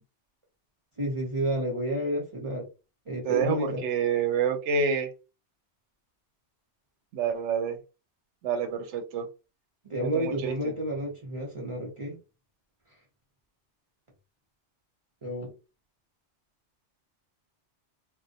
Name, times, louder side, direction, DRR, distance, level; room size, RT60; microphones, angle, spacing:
voice 1, 1.0-2.7 3.1-3.8 9.8-12.2 15.2-15.5, equal, 35° right, -3 dB, 0.5 m, -30 dB
voice 2, 3.2-5.1 7.1-7.8 8.4-9.3 10.0-10.7, right 6 dB, 90° right, 7 dB, 0.9 m, -28 dB
2.2 x 2.1 x 2.7 m, 0.31 s
omnidirectional pair, 1.2 m